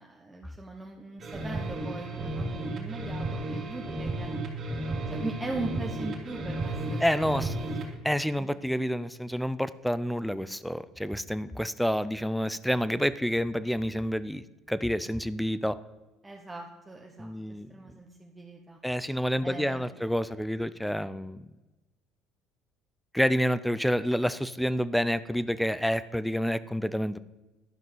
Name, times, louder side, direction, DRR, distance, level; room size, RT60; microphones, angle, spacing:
voice 1, 0.0-4.3 5.1-7.1 7.8-7.9 8.4-8.5 16.2-17.3 17.7-18.8 19.4-19.9, right 2 dB, 15° right, 0 dB, 1.1 m, -40 dB
sound 1, 1.2-7.9, right 2 dB, 45° right, 3.0 m, -33 dB
voice 2, 7.0-7.7 8.0-15.8 17.2-18.0 18.8-21.4 23.1-27.2, equal, ahead, 16 dB, 0.5 m, -29 dB
12.0 x 5.5 x 5.5 m, 1.1 s
supercardioid pair, 90°, 0 cm